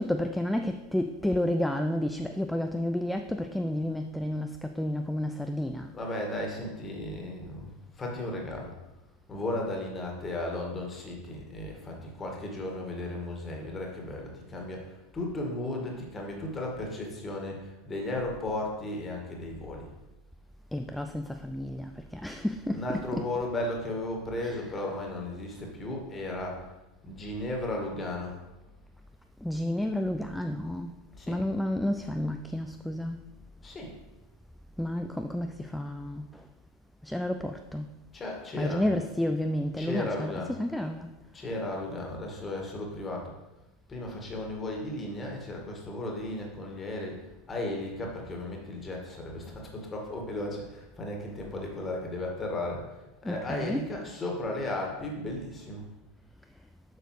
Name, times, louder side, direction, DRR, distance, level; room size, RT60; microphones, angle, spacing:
voice 1, 0.0-5.9 20.7-23.4 24.4-24.7 29.4-30.9 31.3-33.2 34.8-36.4 37.0-37.9 38.6-41.1 53.2-53.9, left 1 dB, 5° left, 6 dB, 0.4 m, -31 dB
voice 2, 5.9-8.8 9.3-19.9 22.7-26.7 27.0-28.4 31.1-31.4 33.6-33.9 38.1-38.9 39.8-40.6 41.3-43.3 43.9-55.8, left 1 dB, 20° left, 0 dB, 1.8 m, -35 dB
7.7 x 6.4 x 3.2 m, 1.0 s
figure-of-eight pair, 80°, 0 cm